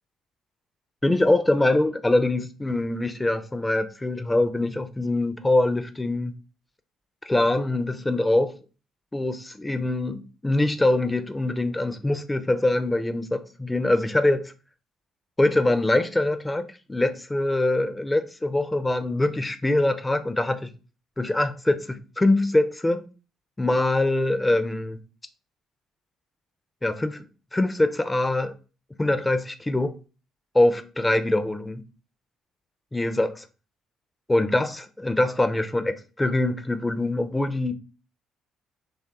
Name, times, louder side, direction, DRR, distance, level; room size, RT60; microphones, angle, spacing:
voice 1, 1.0-6.3 7.3-8.5 9.1-14.5 15.4-20.7 21.2-23.1 23.6-25.0 26.8-27.2 27.5-28.5 29.0-29.9 30.5-31.8 32.9-33.4 34.3-37.7, left 2 dB, 15° left, 0.4 m, -23 dB
3.1 x 2.4 x 2.8 m
hypercardioid pair, 50°, 0 cm